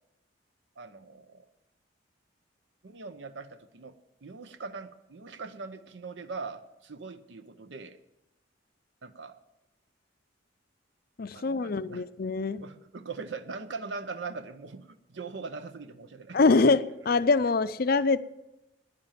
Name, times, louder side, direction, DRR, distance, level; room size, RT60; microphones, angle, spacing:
voice 1, 0.8-1.4 2.8-3.9 4.2-8.0 9.0-9.4 11.3-12.0 12.6-16.6, right 4 dB, 70° right, 11 dB, 0.7 m, -41 dB
voice 2, 11.2-12.6 16.3-18.3, left 4 dB, 50° left, 14 dB, 0.5 m, -24 dB
10.5 x 10.0 x 7.5 m, 0.92 s
head